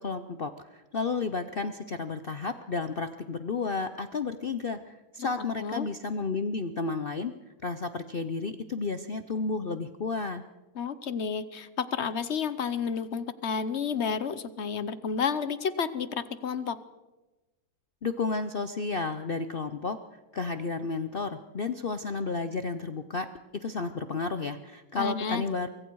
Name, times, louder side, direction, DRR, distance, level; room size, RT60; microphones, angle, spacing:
voice 1, 0.0-7.3 7.6-10.4 18.0-23.3 23.5-25.7, left 4 dB, 80° left, 9 dB, 0.5 m, -32 dB
voice 2, 10.8-16.8 24.9-25.4, left 6 dB, 45° left, 14 dB, 0.9 m, -31 dB
24.0 x 24.0 x 4.7 m, 1.1 s
omnidirectional pair, 2.1 m